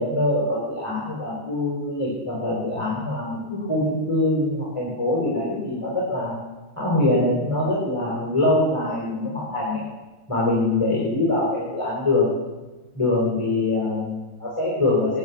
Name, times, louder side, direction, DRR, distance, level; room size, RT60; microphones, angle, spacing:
voice 1, 0.0-6.4 6.8-9.8 10.3-12.3 12.9-15.2, left 2 dB, 15° left, -6 dB, 4.3 m, -23 dB
21.0 x 8.0 x 7.0 m, 1.2 s
omnidirectional pair, 2.2 m